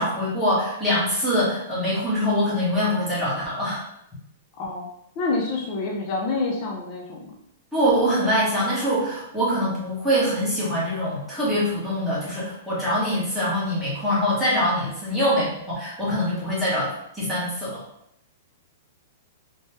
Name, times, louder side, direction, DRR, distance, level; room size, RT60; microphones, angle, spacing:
voice 1, 0.0-3.8 7.7-16.9 17.1-17.8, equal, ahead, -10 dB, 1.4 m, -24 dB
voice 2, 4.6-4.9 5.2-7.2, left 3 dB, 30° left, -2 dB, 0.6 m, -27 dB
3.0 x 2.9 x 3.3 m, 0.76 s
hypercardioid pair, 165°, 0 cm